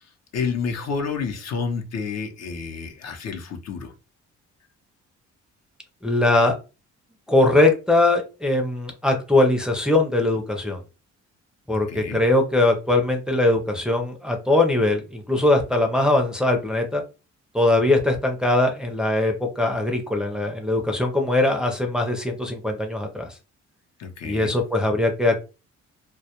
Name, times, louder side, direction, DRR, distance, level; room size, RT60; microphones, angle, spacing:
voice 1, 0.3-3.9 11.9-12.2 24.0-24.5, left 5 dB, 60° left, 4 dB, 0.7 m, -29 dB
voice 2, 6.0-6.6 7.3-10.8 11.7-17.0 17.5-23.4 24.2-25.4, left 2 dB, 5° right, 1 dB, 0.5 m, -21 dB
2.2 x 2.1 x 2.8 m, 0.30 s
cardioid pair, 90°, 30 cm